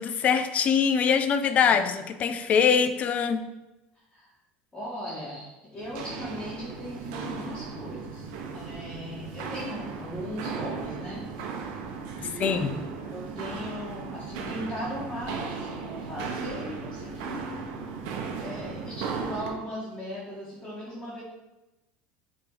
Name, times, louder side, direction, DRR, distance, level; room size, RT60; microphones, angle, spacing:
voice 1, 0.0-3.4 12.4-12.8, left 7 dB, 35° left, 10 dB, 0.5 m, -23 dB
voice 2, 4.7-8.3 8.5-11.3 12.2-17.9 18.4-21.2, equal, 15° left, -8 dB, 1.7 m, -38 dB
Walk footsteps, 5.8-19.6, right 5 dB, 70° right, 1.0 m, -36 dB
6.8 x 3.5 x 4.8 m, 1.0 s
cardioid pair, 145°, 4 cm